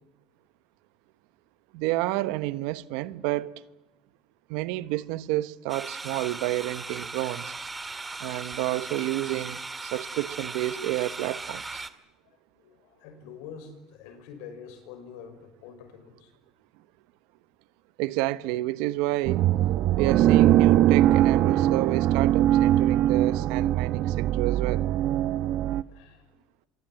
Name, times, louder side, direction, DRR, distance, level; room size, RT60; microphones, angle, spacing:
voice 1, 1.7-3.5 4.5-7.5 8.2-11.8 18.0-19.5 20.0-24.9, right 17 dB, 80° right, 1.1 m, -30 dB
sound 1, 5.7-11.9, right 3 dB, 15° right, 1.9 m, -38 dB
voice 2, 12.3-16.3 19.8-20.0 25.9-26.2, left 6 dB, 80° left, 5.9 m, -46 dB
sound 2, 19.3-25.8, right 13 dB, 60° right, 0.9 m, -21 dB
27.5 x 23.0 x 8.9 m
cardioid pair, 120°, 0 cm